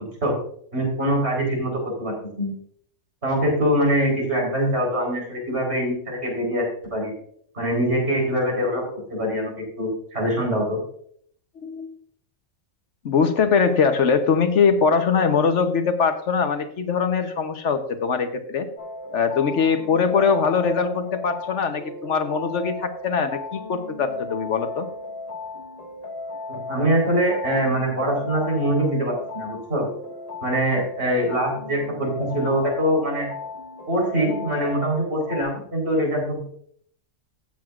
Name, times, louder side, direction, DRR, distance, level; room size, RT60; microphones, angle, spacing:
voice 1, 0.7-1.7 2.0-2.5 3.2-6.6 6.9-7.1 7.5-8.8 9.1-10.8 26.5-29.8 30.4-33.3 33.9-36.4, equal, 60° right, -1 dB, 4.5 m, -23 dB
voice 2, 11.6-11.9 13.0-18.7 19.1-24.9, left 5 dB, 70° left, 8 dB, 1.2 m, -22 dB
sound 1, 18.8-35.4, left 3 dB, 35° left, 1.2 m, -36 dB
16.0 x 7.6 x 2.5 m, 0.63 s
omnidirectional pair, 1.3 m